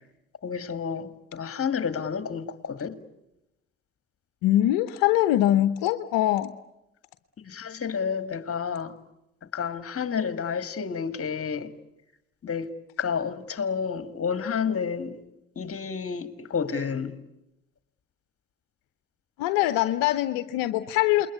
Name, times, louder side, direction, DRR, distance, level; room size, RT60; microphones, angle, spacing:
voice 1, 0.4-3.0 7.4-9.0 9.5-11.7 12.4-12.7 13.0-15.2 15.6-17.2, left 6 dB, 40° left, 2.2 m, -30 dB
voice 2, 4.4-6.5 19.4-21.3, left 14 dB, 75° left, 0.9 m, -23 dB
28.0 x 22.0 x 8.2 m
hypercardioid pair, 50°, 35 cm